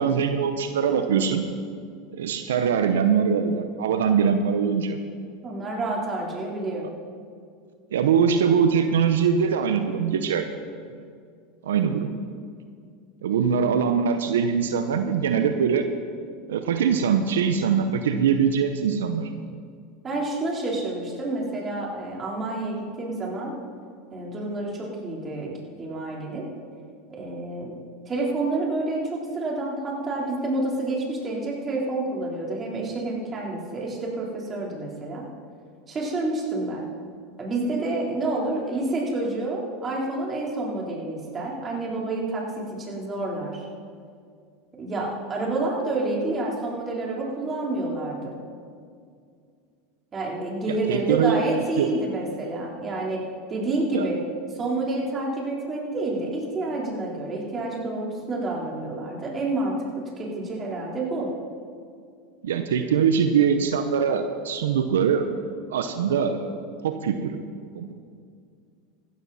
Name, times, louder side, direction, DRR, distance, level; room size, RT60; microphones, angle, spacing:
voice 1, 0.0-1.4 2.1-5.0 7.9-10.5 11.6-12.1 13.2-15.8 16.5-19.3 50.7-51.4 51.8-51.9 53.9-54.1 62.4-65.2 65.7-66.6 66.8-67.4 67.7-67.9, right 7 dB, 85° right, 8 dB, 0.8 m, -22 dB
voice 2, 5.4-6.9 20.0-23.5 24.1-25.5 25.8-26.5 27.1-27.7 28.1-35.2 35.9-36.9 37.4-43.6 44.8-48.4 50.1-53.2 53.5-54.2 54.5-59.9 60.2-61.3, right 2 dB, 25° right, -3 dB, 3.8 m, -28 dB
15.5 x 13.5 x 4.2 m, 2.2 s
hypercardioid pair, 105°, 0 cm